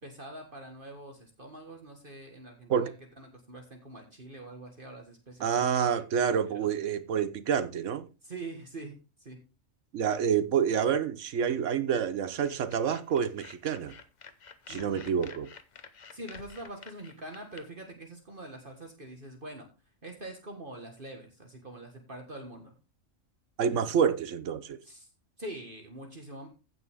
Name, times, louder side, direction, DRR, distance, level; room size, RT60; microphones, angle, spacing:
voice 1, 0.0-2.9 3.2-5.5 6.5-6.7 8.2-9.0 9.2-9.4 14.7-15.2 16.1-19.7 20.0-22.7 23.7-23.8 24.8-25.1 25.4-26.5, right 1 dB, 40° right, 1.8 m, -44 dB
voice 2, 5.4-8.1 9.9-13.9 14.7-15.5 23.6-24.8, right 7 dB, 70° right, 1.2 m, -28 dB
sound 1, 12.4-17.6, left 5 dB, 40° left, 0.8 m, -50 dB
15.5 x 6.1 x 3.5 m
omnidirectional pair, 1.4 m